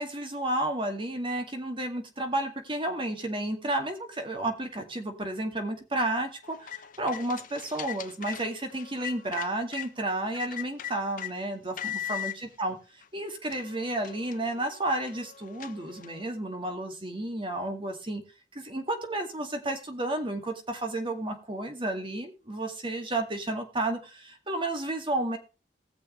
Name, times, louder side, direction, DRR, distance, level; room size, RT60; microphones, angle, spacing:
voice 1, 0.0-6.7 7.0-12.8 13.1-18.2 18.5-25.4, right 1 dB, 30° right, 5 dB, 2.1 m, -32 dB
sound 1, 6.4-9.9 10.3-11.3 11.8-12.4 13.0-13.1 13.4-16.3, left 10 dB, 50° left, 0.8 m, -39 dB
20.0 x 6.9 x 3.1 m, 0.33 s
head